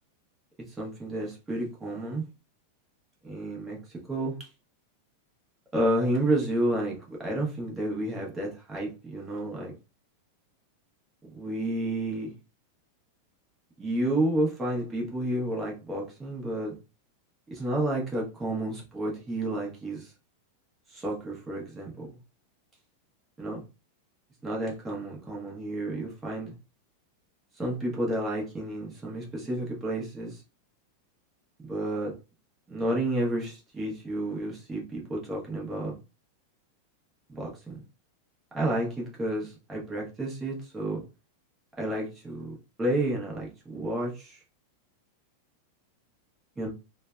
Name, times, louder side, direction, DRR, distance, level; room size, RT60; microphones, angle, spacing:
voice 1, 0.8-2.2 3.2-3.8 4.1-4.5 5.7-9.7 11.2-12.3 13.8-16.8 17.5-20.1 20.9-22.2 23.4-23.6 24.4-26.5 27.6-30.4 31.7-32.1 32.7-36.0 37.3-37.8 38.5-41.0 41.8-44.4 46.6-46.7, right 1 dB, 15° right, 1.0 m, -31 dB
3.1 x 2.1 x 2.4 m
figure-of-eight pair, 90°, 0 cm